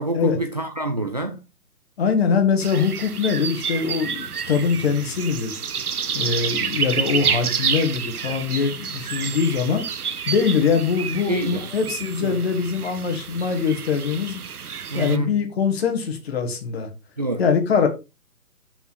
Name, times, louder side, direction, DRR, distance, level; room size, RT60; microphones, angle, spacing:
voice 1, 0.0-1.4 11.3-11.7 12.2-12.4 14.9-15.4 17.2-17.4, right 2 dB, 25° right, 0.5 m, -26 dB
voice 2, 2.0-5.6 6.1-9.8 10.3-14.4 14.9-16.9 17.4-17.9, left 6 dB, 40° left, 1.9 m, -22 dB
sound 1, 2.6-15.2, right 6 dB, 65° right, 0.8 m, -29 dB
7.1 x 5.6 x 4.1 m
figure-of-eight pair, 135°, 48 cm